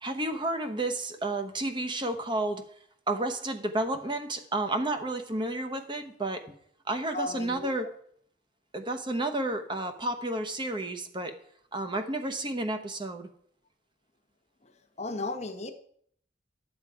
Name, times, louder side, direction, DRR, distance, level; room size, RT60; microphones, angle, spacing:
voice 1, 0.0-2.6 3.1-6.6 6.9-7.9 8.7-11.4 11.7-13.3, right 2 dB, 25° right, 7 dB, 0.9 m, -31 dB
voice 2, 7.1-7.9 14.6-14.7 15.0-15.7, left 2 dB, 35° left, 7 dB, 0.9 m, -35 dB
11.0 x 7.4 x 4.8 m, 0.63 s
head